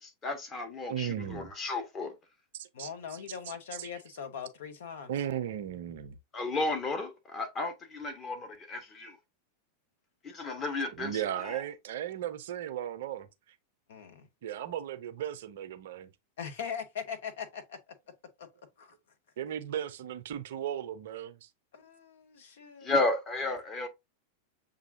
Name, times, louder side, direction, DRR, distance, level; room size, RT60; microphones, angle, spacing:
voice 1, 0.0-2.1 6.3-9.2 10.2-11.6 22.8-23.9, left 2 dB, 25° left, 1.1 m, -33 dB
voice 2, 0.9-1.5 2.5-3.9 5.1-6.2 10.9-13.6 14.4-16.1 19.4-21.5, right 10 dB, 55° right, 0.5 m, -36 dB
voice 3, 2.7-5.1 13.9-14.3 16.4-17.8 18.4-18.5 18.8-18.9 21.7-22.9, left 7 dB, 60° left, 0.8 m, -41 dB
6.9 x 2.6 x 2.6 m
figure-of-eight pair, 90°, 0 cm